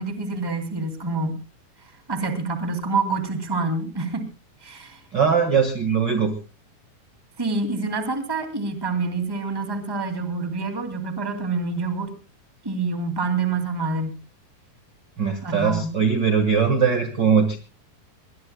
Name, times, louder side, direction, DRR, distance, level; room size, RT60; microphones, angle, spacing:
voice 1, 0.0-1.4 1.8-4.3 4.6-5.0 7.4-12.1 12.6-14.2 15.4-16.0, right 3 dB, 10° right, 8 dB, 1.5 m, -27 dB
voice 2, 5.1-6.3 15.2-17.6, right 6 dB, 50° right, 8 dB, 1.4 m, -20 dB
23.0 x 20.5 x 2.2 m, 0.32 s
omnidirectional pair, 4.4 m